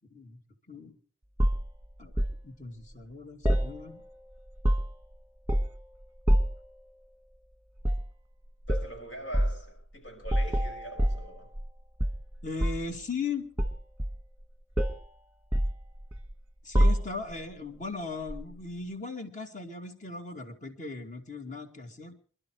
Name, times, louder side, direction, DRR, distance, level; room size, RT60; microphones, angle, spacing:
sound 1, 1.4-2.4 3.4-4.2 4.5-5.1 5.5-5.8 6.3-6.7 7.8-8.1 8.7-8.9 9.3-9.6 10.3-11.7 12.0-12.9 13.6-14.4 14.8-15.1 15.5-16.3 16.7-17.4 18.3-18.5, equal, 10° right, 1.4 m, -27 dB
voice 1, 2.4-4.0 12.4-13.5 16.6-22.1, left 4 dB, 40° left, 2.4 m, -38 dB
voice 2, 8.7-11.5, right 1 dB, 75° left, 6.1 m, -43 dB
27.5 x 12.0 x 3.2 m
head